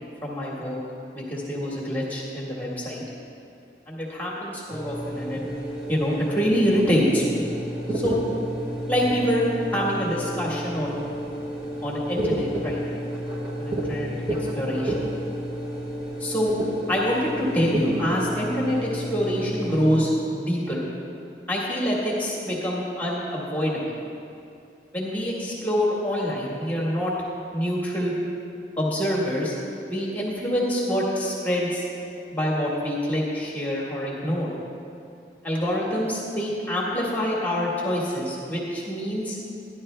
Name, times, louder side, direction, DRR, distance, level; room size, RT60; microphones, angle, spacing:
voice 1, 0.2-0.8 1.1-3.0 3.9-5.5 5.9-7.4 7.9-8.2 8.9-11.0 11.8-12.8 13.6-14.1 14.5-15.0 16.2-16.5 16.9-20.9 21.5-23.9 24.9-27.1 27.5-28.1 28.8-29.5 29.9-31.8 32.3-34.5 35.4-39.4, equal, 10° left, -5 dB, 1.6 m, -26 dB
sound 1, 4.7-20.1, equal, 20° right, 1.4 m, -31 dB
13.5 x 11.0 x 3.3 m, 2.7 s
head